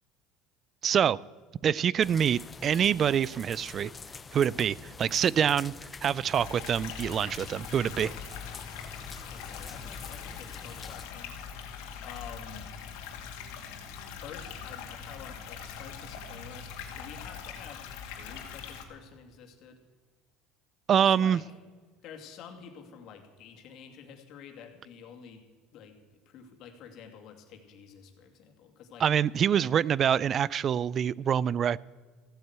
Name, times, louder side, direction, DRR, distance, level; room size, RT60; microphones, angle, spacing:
voice 1, 0.8-1.2 1.6-3.9 4.3-5.7 6.0-8.1 20.9-21.4 29.0-31.8, right 8 dB, 35° right, 24 dB, 0.3 m, -25 dB
sound 1, 2.0-11.1, left 5 dB, 20° left, 0.7 m, -46 dB
sound 2, 6.3-18.8, left 7 dB, 80° left, 2.3 m, -42 dB
voice 2, 9.3-11.3 12.0-12.7 14.1-16.7 17.0-19.8 20.9-21.4 22.0-25.4 25.7-29.0, left 7 dB, 55° left, 4 dB, 2.4 m, -49 dB
15.5 x 9.1 x 8.1 m, 1.5 s
supercardioid pair, 125°, 0 cm